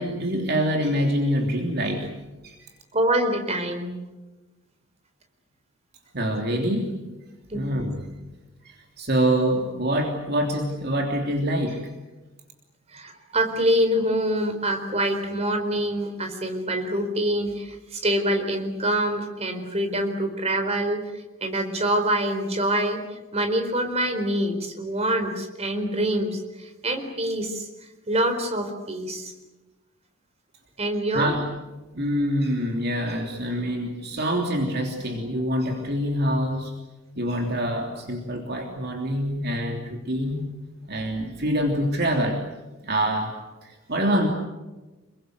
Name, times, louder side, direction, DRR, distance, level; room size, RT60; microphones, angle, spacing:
voice 1, 0.0-2.2 2.4-2.6 6.1-7.0 7.5-8.1 8.6-11.9 31.1-31.5 31.9-36.7 37.2-40.5 40.9-42.4 42.8-43.3 43.6-44.3, equal, 50° right, 2 dB, 3.2 m, -25 dB
voice 2, 2.9-4.0 7.5-7.7 12.9-23.0 23.3-27.7 28.1-29.3 30.8-31.3, right 1 dB, 30° right, 5 dB, 4.3 m, -25 dB
28.0 x 23.0 x 8.1 m, 1.1 s
head